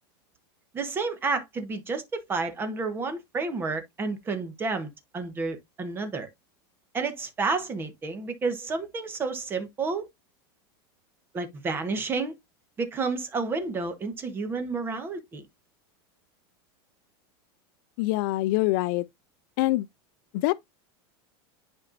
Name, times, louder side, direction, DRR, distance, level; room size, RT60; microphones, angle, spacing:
voice 1, 0.7-6.3 6.9-10.1 11.3-12.3 12.8-15.5, right 4 dB, 15° right, 1.1 m, -30 dB
voice 2, 18.0-19.1 19.6-19.9 20.3-20.5, left 18 dB, 50° left, 0.4 m, -24 dB
10.5 x 4.3 x 2.5 m
supercardioid pair, 165°, 13 cm